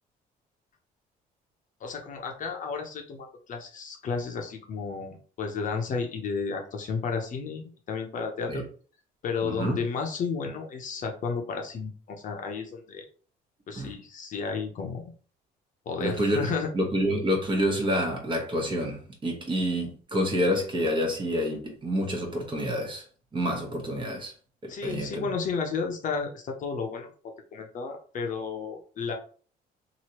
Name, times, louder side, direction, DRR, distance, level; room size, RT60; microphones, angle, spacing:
voice 1, 1.8-8.6 9.2-13.0 13.7-15.0 15.9-16.7 24.7-27.1 27.5-29.1, left 5 dB, 50° left, 0.8 m, -32 dB
voice 2, 9.4-9.8 13.7-13.9 16.0-23.0 23.3-24.3 24.6-25.3, equal, 30° right, 1.1 m, -28 dB
3.0 x 2.7 x 2.9 m
cardioid pair, 110°, 17 cm